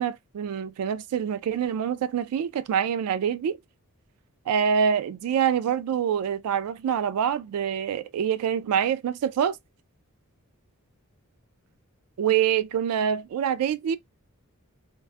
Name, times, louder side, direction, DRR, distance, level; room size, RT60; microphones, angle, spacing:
voice 1, 0.0-3.6 4.5-9.6 12.2-14.0, right 8 dB, 90° right, 0.3 m, -25 dB
2.3 x 2.3 x 2.4 m
head